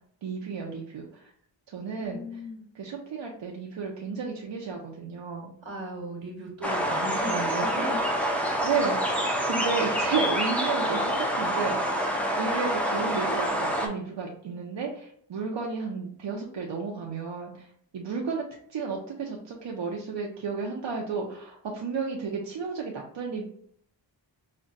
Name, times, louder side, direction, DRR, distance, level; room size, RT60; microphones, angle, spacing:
voice 1, 0.2-1.3 1.7-2.2 2.7-5.5 8.6-18.4 18.7-23.5, right 5 dB, 70° right, -1 dB, 0.6 m, -33 dB
voice 2, 2.0-2.6 5.6-8.0 8.3-8.5, right 1 dB, 85° right, 0 dB, 1.3 m, -35 dB
sound 1, 6.6-13.9, equal, 5° left, 0.5 m, -27 dB
5.1 x 2.1 x 2.5 m, 0.64 s
wide cardioid pair, 95°, 45 cm